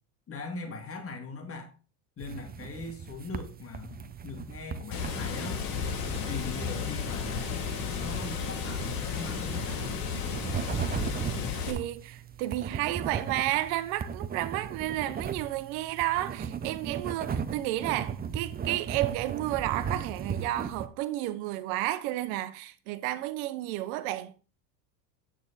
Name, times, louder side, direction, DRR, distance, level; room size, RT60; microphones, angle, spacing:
voice 1, 0.3-1.7 2.2-5.6 6.0-10.0, left 3 dB, 30° left, 2.2 m, -41 dB
sound 1, 2.2-20.9, right 7 dB, 20° right, 0.8 m, -37 dB
Water, 4.9-11.7, left 6 dB, 50° left, 4.2 m, -33 dB
voice 2, 11.7-24.3, right 15 dB, 70° right, 1.3 m, -32 dB
9.6 x 8.6 x 4.1 m
supercardioid pair, 115°, 44 cm